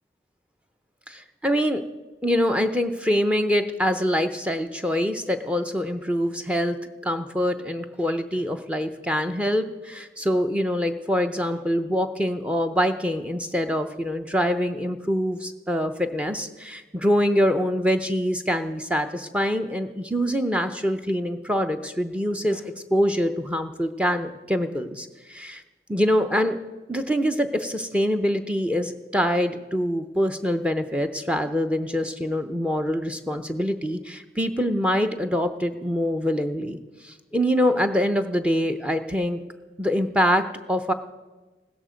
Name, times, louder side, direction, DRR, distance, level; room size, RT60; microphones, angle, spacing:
voice 1, 1.1-1.8 2.2-6.8 7.0-25.6 25.9-26.6 26.9-36.8 37.0-39.4 39.8-40.9, equal, 5° right, 7 dB, 0.7 m, -24 dB
16.0 x 13.5 x 5.1 m, 1.2 s
head